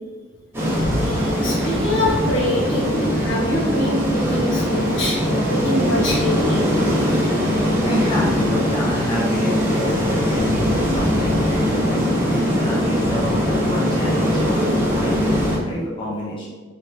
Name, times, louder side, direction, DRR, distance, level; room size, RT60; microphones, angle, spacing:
sound 1, 0.5-15.6, equal, 10° right, 1.0 m, -21 dB
voice 1, 1.0-6.6, equal, 70° left, -4 dB, 1.2 m, -24 dB
voice 2, 7.8-16.5, left 1 dB, 25° left, -6 dB, 0.6 m, -28 dB
4.5 x 3.3 x 2.8 m, 1.4 s
head